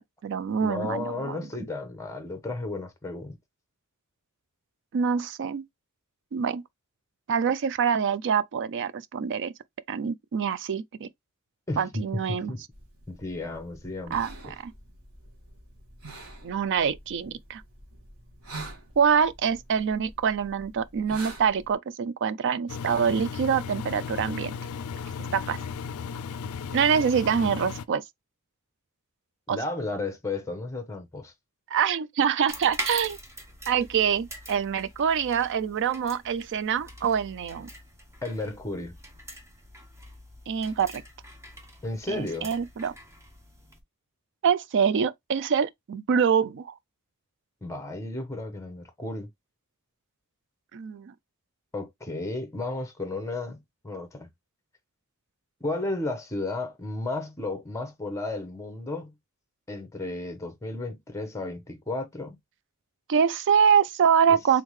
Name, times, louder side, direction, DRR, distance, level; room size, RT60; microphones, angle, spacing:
voice 1, 0.0-1.4 4.9-5.6 6.3-6.6 7.3-9.5 9.9-11.1 11.8-12.5 14.1-14.7 16.4-17.6 19.0-24.5 25.3-25.6 26.7-28.0 29.5-29.6 31.7-33.2 33.7-37.7 40.5-41.0 42.1-42.9 44.4-46.7 50.7-51.1 63.1-64.6, right 7 dB, 55° right, 0.4 m, -25 dB
voice 2, 0.6-3.4 11.7-12.6 13.1-14.2 29.5-31.3 38.2-39.0 41.8-42.5 47.6-49.3 51.7-54.3 55.6-59.1 59.7-62.4 64.3-64.4, left 2 dB, 15° left, 0.9 m, -33 dB
sound 1, 12.7-21.7, right 2 dB, 80° right, 1.6 m, -46 dB
Engine, 22.7-27.9, left 6 dB, 75° left, 0.4 m, -35 dB
sound 2, 32.5-43.8, right 1 dB, 15° right, 0.9 m, -43 dB
3.6 x 3.6 x 3.1 m
head